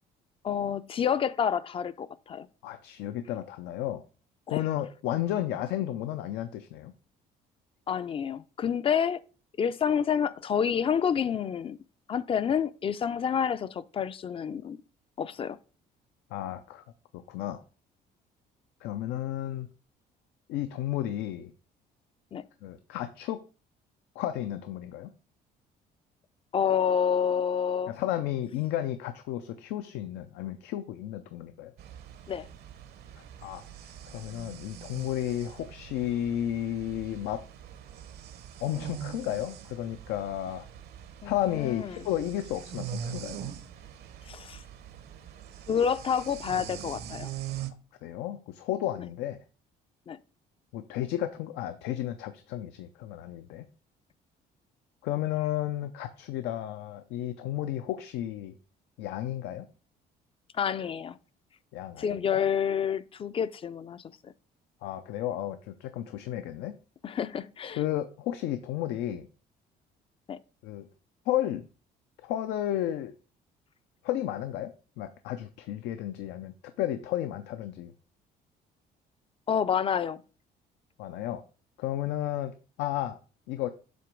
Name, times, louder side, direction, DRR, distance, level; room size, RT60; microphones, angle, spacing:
voice 1, 0.4-2.5 4.5-4.6 7.9-9.2 9.6-11.8 12.1-14.8 15.2-15.6 22.3-22.4 26.5-28.0 32.3-32.5 41.2-42.1 44.3-44.6 45.7-47.3 50.1-50.2 60.5-61.2 62.0-64.3 67.0-67.8 70.3-70.4 79.5-80.2, left 7 dB, 35° left, 0.4 m, -28 dB
voice 2, 2.6-4.0 4.5-6.9 16.3-16.8 17.3-17.6 18.8-19.7 20.5-21.5 22.6-23.4 24.2-25.1 27.9-31.7 33.4-37.4 38.6-40.6 41.2-43.4 48.0-49.4 50.7-53.6 55.0-58.5 59.0-59.7 61.7-62.2 64.8-66.7 67.8-69.3 70.6-70.9 71.3-71.7 72.2-73.1 74.0-74.7 75.0-77.9 81.0-81.4 81.8-83.2 83.5-83.7, left 12 dB, 90° left, 0.5 m, -33 dB
sound 1, 31.8-47.7, right 9 dB, 70° right, 0.8 m, -43 dB
7.7 x 3.0 x 5.0 m
cardioid pair, 110°, 17 cm